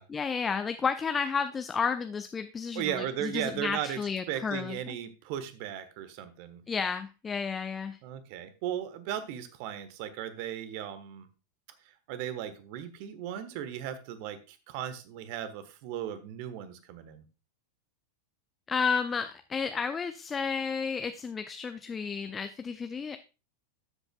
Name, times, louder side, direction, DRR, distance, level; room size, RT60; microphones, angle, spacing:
voice 1, 0.1-4.9 6.7-8.0 18.7-23.2, left 5 dB, 20° left, 9 dB, 0.5 m, -32 dB
voice 2, 2.7-4.0 4.3-6.6 8.0-11.3 12.1-17.2, right 10 dB, 45° right, 12 dB, 1.1 m, -36 dB
13.0 x 7.9 x 2.3 m, 0.30 s
figure-of-eight pair, 90°, 0 cm